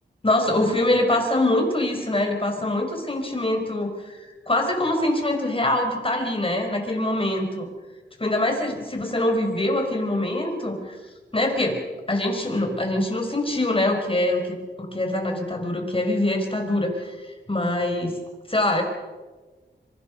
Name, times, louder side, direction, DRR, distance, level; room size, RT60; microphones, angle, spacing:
voice 1, 0.2-4.2 4.5-7.7 8.2-11.0 11.3-11.8 12.1-17.2 17.5-18.2 18.5-18.8, left 1 dB, 30° left, 3 dB, 5.4 m, -24 dB
26.0 x 24.0 x 5.5 m, 1.3 s
cardioid pair, 55°, 19 cm